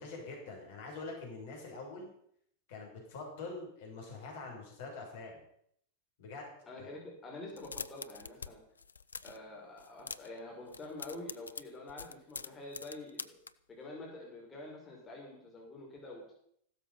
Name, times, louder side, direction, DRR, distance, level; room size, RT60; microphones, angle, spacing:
voice 1, 0.0-2.1 2.7-5.4 6.2-6.5 6.8-6.9, left 3 dB, 55° left, 0 dB, 6.4 m, -45 dB
voice 2, 6.7-8.6 9.2-13.4 13.7-16.3, left 2 dB, 20° left, -2 dB, 5.6 m, -47 dB
sound 1, 7.5-8.5 8.8-9.4 9.8-10.4 10.7-13.5, left 5 dB, 75° left, 0.6 m, -44 dB
16.0 x 13.0 x 5.7 m, 0.69 s
figure-of-eight pair, 90°, 0 cm